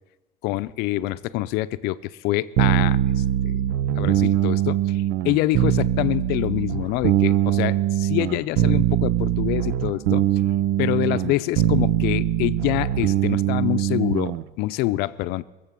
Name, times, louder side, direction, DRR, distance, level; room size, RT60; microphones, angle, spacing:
voice 1, 0.4-3.5 4.0-10.2 10.8-15.4, left 17 dB, 70° left, 14 dB, 0.6 m, -26 dB
sound 1, 2.6-14.4, right 12 dB, 80° right, 0.6 m, -22 dB
21.5 x 7.7 x 7.5 m, 1.1 s
cardioid pair, 165°, 17 cm